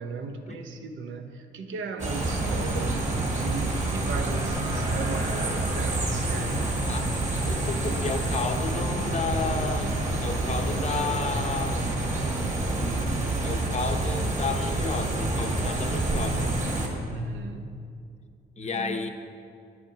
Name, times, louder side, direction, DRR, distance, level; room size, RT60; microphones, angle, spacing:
voice 1, 0.0-6.6 17.1-17.9 18.6-19.1, right 3 dB, 75° right, 5 dB, 0.8 m, -37 dB
sound 1, 2.0-16.9, right 2 dB, 35° right, 1.8 m, -27 dB
voice 2, 7.5-9.9 10.2-11.8 13.4-16.6 18.6-19.1, left 4 dB, 35° left, 6 dB, 0.7 m, -32 dB
11.0 x 7.9 x 2.8 m, 2.3 s
cardioid pair, 90°, 20 cm